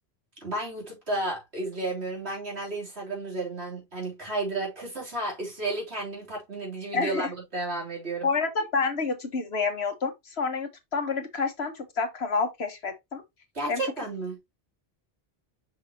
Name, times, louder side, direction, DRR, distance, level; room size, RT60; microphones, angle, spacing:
voice 1, 0.4-8.3 13.5-14.4, right 2 dB, 85° right, 3.9 m, -32 dB
voice 2, 6.9-7.3 8.2-13.2 13.7-13.8, left 4 dB, 75° left, 1.7 m, -28 dB
6.7 x 6.1 x 3.0 m
omnidirectional pair, 1.1 m